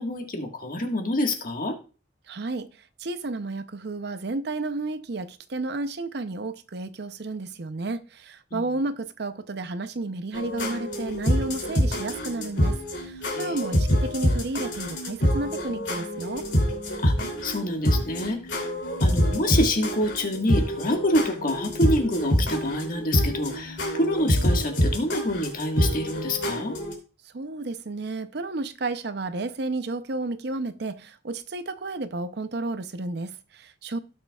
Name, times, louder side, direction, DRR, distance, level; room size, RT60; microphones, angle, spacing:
voice 1, 0.0-1.8 8.5-8.6 13.3-13.6 17.0-17.1 17.4-18.5 19.0-26.8, left 1 dB, 50° left, 1.6 m, -27 dB
voice 2, 2.3-2.7 3.0-16.4 27.2-34.0, right 2 dB, 60° right, 0.6 m, -32 dB
sound 1, 10.3-26.9, equal, 70° left, 3.0 m, -26 dB
17.0 x 6.6 x 2.4 m
head